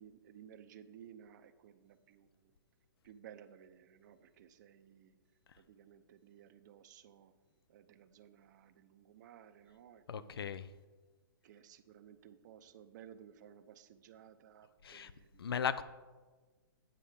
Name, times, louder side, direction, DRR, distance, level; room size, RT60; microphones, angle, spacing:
voice 1, 0.0-2.5 3.0-5.1 5.6-7.3 7.7-10.6 11.4-15.4, right 9 dB, 50° right, 11 dB, 0.7 m, -57 dB
voice 2, 10.1-10.7 14.8-15.1 15.4-15.8, left 7 dB, 80° left, 15 dB, 0.5 m, -36 dB
9.1 x 5.7 x 4.9 m, 1.3 s
hypercardioid pair, 135°, 12 cm